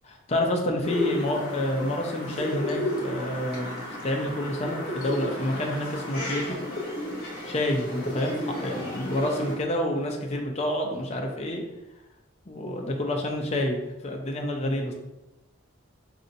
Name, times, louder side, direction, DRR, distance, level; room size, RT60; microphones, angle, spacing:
voice 1, 0.0-3.7 4.0-6.6 7.4-11.6 12.5-13.8 14.0-14.9, left 1 dB, 35° left, 2 dB, 0.6 m, -28 dB
sound 1, 0.8-9.6, left 1 dB, 50° left, 1.1 m, -33 dB
5.1 x 2.7 x 2.6 m, 0.97 s
head